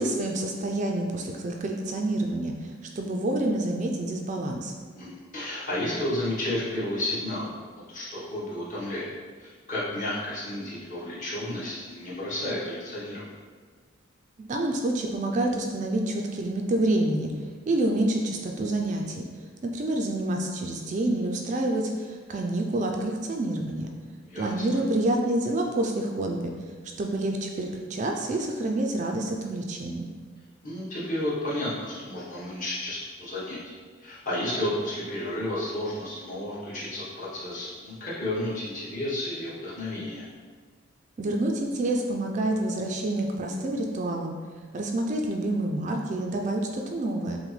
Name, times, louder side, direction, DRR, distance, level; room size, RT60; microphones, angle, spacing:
voice 1, 0.0-4.7 14.4-17.3 17.7-19.2 19.6-23.9 24.4-26.5 27.0-30.1 41.2-44.3 44.7-47.4, right 1 dB, 35° right, 2 dB, 0.3 m, -28 dB
voice 2, 4.9-9.1 9.4-13.3 24.2-24.6 30.6-33.6 34.0-40.2, left 1 dB, 40° left, -8 dB, 1.2 m, -32 dB
5.9 x 2.1 x 3.2 m, 1.5 s
head